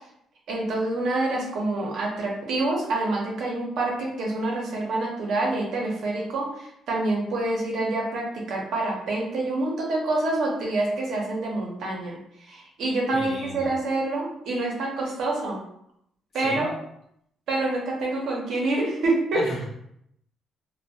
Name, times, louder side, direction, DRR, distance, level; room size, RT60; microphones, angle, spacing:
voice 1, 0.5-15.6 16.3-16.7 17.5-19.4, right 2 dB, 75° right, -2 dB, 0.7 m, -27 dB
voice 2, 13.1-13.7 16.3-16.7 19.3-19.7, left 1 dB, 55° left, -3 dB, 0.8 m, -35 dB
2.2 x 2.1 x 2.6 m, 0.75 s
cardioid pair, 90°, 0 cm